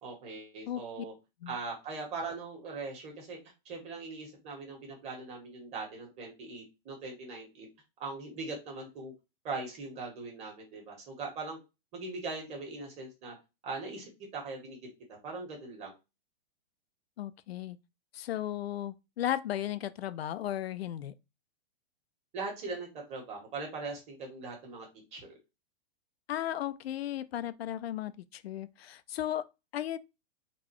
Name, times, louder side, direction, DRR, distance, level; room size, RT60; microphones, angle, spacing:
voice 1, 0.0-1.1 1.5-3.4 3.6-7.7 8.0-9.1 9.4-11.6 11.9-13.3 13.6-14.8 15.2-15.9 22.3-24.9 25.1-25.3, right 3 dB, 20° right, 1.4 m, -40 dB
voice 2, 0.7-1.0 1.4-1.6 17.2-17.8 18.1-21.1 26.3-29.5 29.7-30.0, left 11 dB, 90° left, 0.5 m, -35 dB
4.0 x 2.4 x 4.4 m
hypercardioid pair, 160°, 30 cm